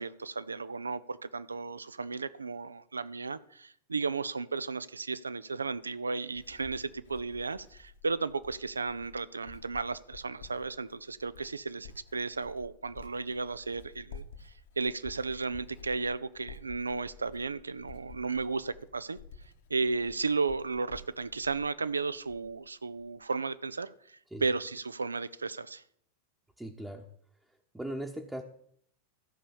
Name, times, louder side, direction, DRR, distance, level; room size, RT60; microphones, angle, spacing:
voice 1, 0.0-19.2 19.7-25.8, right 4 dB, 75° right, 16 dB, 0.5 m, -34 dB
Writing, 5.6-22.7 23.0-23.4, left 5 dB, 60° left, 1.5 m, -52 dB
voice 2, 26.6-27.1 27.7-28.4, right 1 dB, 5° right, 1 dB, 1.0 m, -38 dB
14.0 x 5.6 x 7.0 m, 0.67 s
figure-of-eight pair, 90°, 0 cm